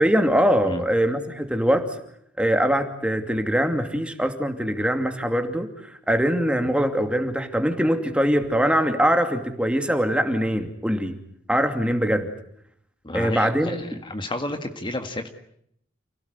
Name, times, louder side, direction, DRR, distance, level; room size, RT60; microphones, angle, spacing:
voice 1, 0.0-1.9 2.4-11.2 11.5-12.3 13.1-14.0, equal, 5° right, 6 dB, 2.6 m, -22 dB
voice 2, 13.0-15.3, left 1 dB, 25° left, 6 dB, 1.8 m, -31 dB
29.0 x 17.5 x 9.7 m, 0.72 s
head